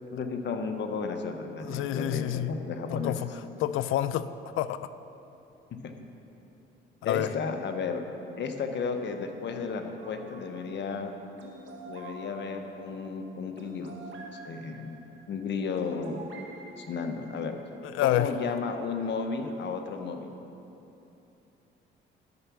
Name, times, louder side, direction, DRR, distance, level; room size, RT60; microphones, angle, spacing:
voice 1, 0.1-3.2 7.0-8.0 8.4-11.1 11.9-14.0 14.3-15.0 15.3-16.2 16.8-17.6 18.0-20.3, left 5 dB, 60° left, 5 dB, 1.0 m, -33 dB
voice 2, 1.6-2.5 2.9-3.2 3.6-4.3 4.6-4.9 7.0-7.3 17.8-18.3, left 13 dB, 80° left, 14 dB, 0.4 m, -28 dB
sound 1, 10.0-17.7, right 1 dB, 65° right, 1.4 m, -47 dB
11.0 x 5.8 x 7.0 m, 2.9 s
cardioid pair, 90°, 21 cm